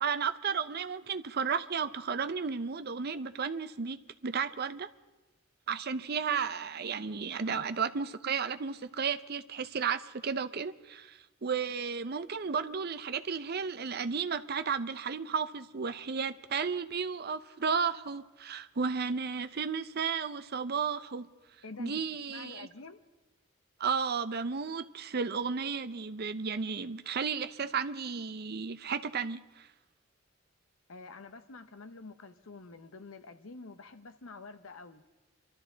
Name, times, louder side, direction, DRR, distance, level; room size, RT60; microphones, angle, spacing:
voice 1, 0.0-4.9 5.7-21.3 21.8-22.7 23.8-29.7, right 6 dB, 50° right, 0.6 m, -33 dB
voice 2, 21.6-23.0 30.9-35.1, left 3 dB, 85° left, 0.9 m, -48 dB
26.5 x 13.0 x 4.0 m
head